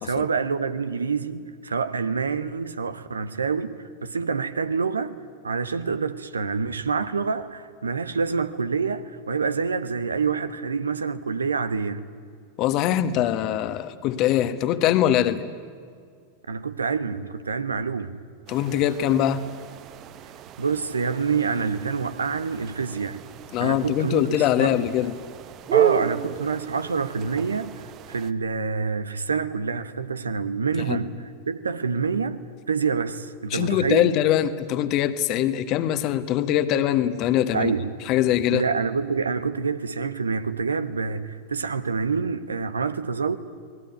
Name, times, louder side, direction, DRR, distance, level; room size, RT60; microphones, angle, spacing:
voice 1, 0.0-3.7 4.0-5.2 5.4-12.0 16.5-18.2 20.6-23.2 23.6-24.7 25.7-27.7 28.1-32.4 32.7-34.1 37.5-37.9 38.5-43.4, right 5 dB, 75° right, 1.2 m, -27 dB
voice 2, 12.6-15.4 18.5-19.4 23.5-25.1 30.9-31.0 33.5-37.7 38.1-38.6, left 11 dB, 40° left, 1.4 m, -22 dB
sound 1, 18.5-28.3, right 10 dB, 35° right, 1.1 m, -32 dB
29.0 x 20.0 x 9.4 m
figure-of-eight pair, 90°, 0 cm